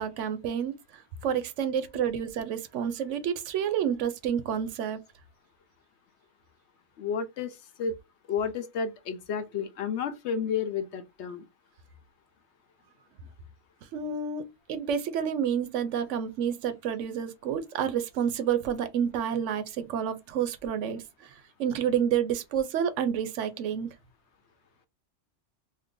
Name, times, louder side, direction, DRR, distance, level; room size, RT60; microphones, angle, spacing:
voice 1, 0.0-5.0 13.9-14.4 14.7-21.3 21.6-23.9, right 8 dB, 75° right, 0.9 m, -29 dB
voice 2, 7.0-7.9 8.3-11.5, left 6 dB, 70° left, 0.8 m, -31 dB
2.7 x 2.6 x 3.6 m
omnidirectional pair, 1.3 m